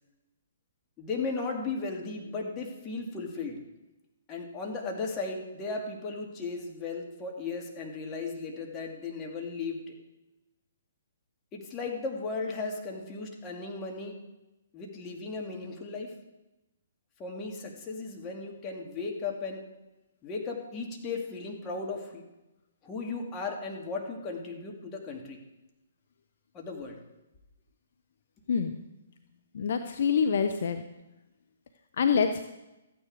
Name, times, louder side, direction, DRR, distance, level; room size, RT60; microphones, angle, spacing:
voice 1, 1.0-3.6 4.3-9.9 11.5-14.1 14.7-16.1 17.2-19.6 20.2-22.2 22.8-25.4 26.5-27.0, left 4 dB, 25° left, 0 dB, 2.2 m, -36 dB
voice 2, 29.5-30.8 32.0-32.4, left 6 dB, 60° left, 7 dB, 0.8 m, -26 dB
13.5 x 9.4 x 4.8 m, 0.99 s
figure-of-eight pair, 130°, 0 cm